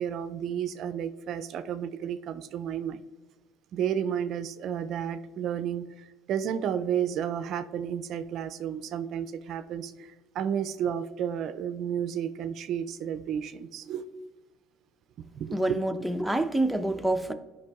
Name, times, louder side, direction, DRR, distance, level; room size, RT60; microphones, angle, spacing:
voice 1, 0.0-3.0 3.7-14.0 15.2-15.8, right 9 dB, 60° right, 0.3 m, -32 dB
voice 2, 15.5-17.3, right 1 dB, ahead, 0.6 m, -27 dB
11.5 x 5.3 x 2.3 m
hypercardioid pair, 70°, 0 cm